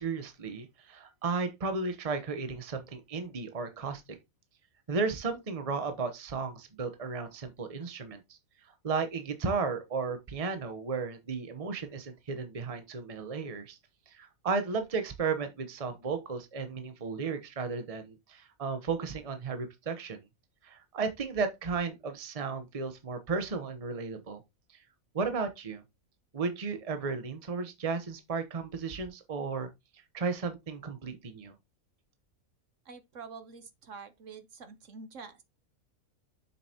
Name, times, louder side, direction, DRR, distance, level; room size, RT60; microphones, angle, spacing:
voice 1, 0.0-4.2 4.9-8.4 8.8-13.8 14.1-20.2 20.6-24.4 24.7-24.8 25.1-25.8 26.3-31.5, right 4 dB, 30° right, 1.0 m, -34 dB
voice 2, 32.8-35.4, right 5 dB, 65° right, 1.3 m, -47 dB
7.1 x 6.8 x 2.9 m
omnidirectional pair, 1.5 m